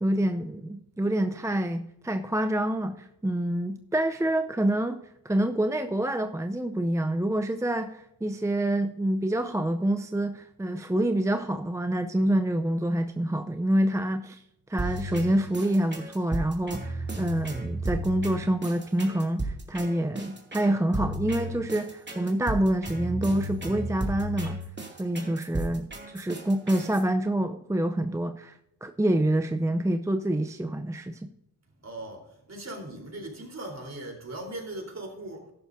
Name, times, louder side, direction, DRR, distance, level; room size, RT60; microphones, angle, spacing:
voice 1, 0.0-14.4 14.7-24.6 25.0-31.3, right 1 dB, 10° right, 7 dB, 0.6 m, -27 dB
sound 1, 14.8-27.0, right 1 dB, 30° right, 2.6 m, -34 dB
voice 2, 31.8-35.5, right 1 dB, 45° right, 1 dB, 3.8 m, -39 dB
13.5 x 11.0 x 2.7 m, 0.83 s
cardioid pair, 65°, 38 cm